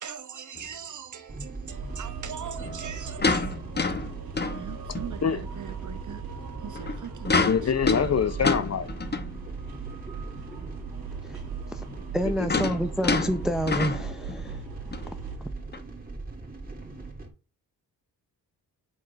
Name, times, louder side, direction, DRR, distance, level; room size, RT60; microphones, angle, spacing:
voice 1, 0.0-3.6 4.4-6.2 6.6-7.7, right 8 dB, 50° right, 1.2 m, -41 dB
sound 1, 0.6-0.7 2.6-5.2 5.7-5.8 6.7-9.5 10.1-10.2 10.4-10.5 11.8-14.6 14.9-15.1 15.7-15.8, left 4 dB, 25° left, 1.0 m, -29 dB
sound 2, 1.3-17.3, right 3 dB, 25° right, 2.3 m, -40 dB
sound 3, 1.7-15.4, right 6 dB, 70° right, 1.5 m, -40 dB
voice 2, 7.3-8.9 12.4-12.5, left 7 dB, 45° left, 0.6 m, -25 dB
voice 3, 12.1-14.6, equal, ahead, 0.5 m, -28 dB
7.8 x 3.8 x 5.1 m
cardioid pair, 90°, 38 cm